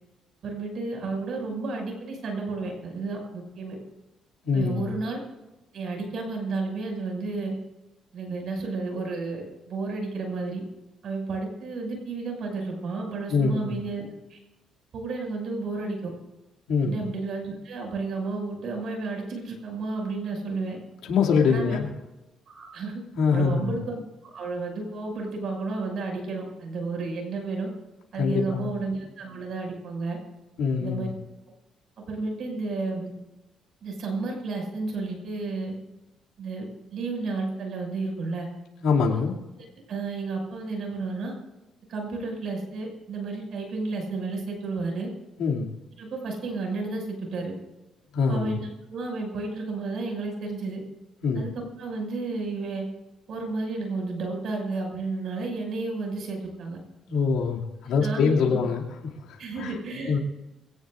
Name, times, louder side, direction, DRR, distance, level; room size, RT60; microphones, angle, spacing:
voice 1, 0.4-3.8 4.5-5.2 5.7-7.6 8.1-10.6 11.0-14.4 14.9-16.1 16.8-20.8 21.5-21.8 22.5-23.0 23.3-27.7 28.1-30.2 30.8-31.1 32.1-33.1 33.8-35.7 36.4-36.7 36.9-38.5 39.1-39.3 39.9-41.3 41.9-45.1 46.0-47.5 48.3-50.8 51.3-52.9 53.3-56.8 58.0-58.6 59.4-60.2, right 3 dB, 65° right, 1 dB, 6.2 m, -32 dB
voice 2, 4.4-4.9 13.3-13.8 16.7-17.0 21.1-21.9 23.1-23.7 28.2-28.7 30.6-31.1 38.8-39.4 45.4-45.7 48.1-48.6 51.2-51.5 57.1-59.7 60.1-60.2, left 5 dB, 85° left, -2 dB, 2.6 m, -24 dB
23.5 x 17.5 x 2.6 m, 1.0 s
cardioid pair, 100°, 0 cm